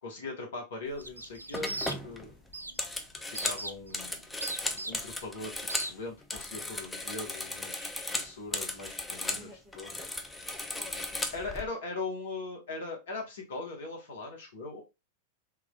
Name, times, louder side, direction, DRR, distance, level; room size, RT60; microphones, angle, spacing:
voice 1, 0.0-2.3 3.3-4.3 4.6-9.9 11.3-14.8, left 3 dB, 65° left, 1 dB, 1.3 m, -40 dB
sound 1, 0.9-1.1 1.5-5.9 6.2-9.5 9.7-11.6, left 2 dB, 10° left, 0.6 m, -36 dB
sound 2, 1.0-2.2 2.5-2.8 3.4-3.9 4.4-5.3 5.7-5.9, right 2 dB, 85° right, 0.3 m, -38 dB
voice 2, 9.1-11.8, equal, 20° right, 1 dB, 1.3 m, -54 dB
3.6 x 3.2 x 2.4 m, 0.25 s
figure-of-eight pair, 90°, 0 cm